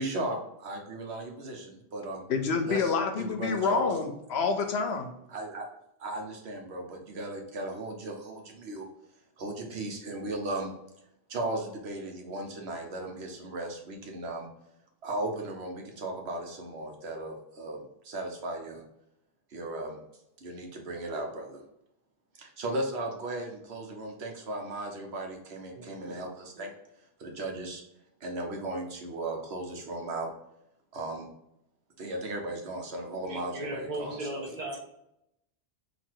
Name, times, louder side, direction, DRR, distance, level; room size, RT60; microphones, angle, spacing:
voice 1, 0.0-2.2 2.6-3.9 5.3-5.7 6.0-8.9 9.4-10.7 11.3-14.5 15.0-18.8 19.5-20.0 20.4-21.6 22.4-26.7 27.2-27.8 28.2-30.3 30.9-31.3 32.0-34.4, right 2 dB, 90° right, 2 dB, 1.2 m, -36 dB
voice 2, 2.3-5.1, left 5 dB, 80° left, 6 dB, 0.9 m, -28 dB
voice 3, 25.7-26.2 26.5-26.7 33.3-34.8, right 1 dB, 50° right, -2 dB, 0.7 m, -37 dB
4.0 x 2.7 x 4.5 m, 0.81 s
omnidirectional pair, 1.1 m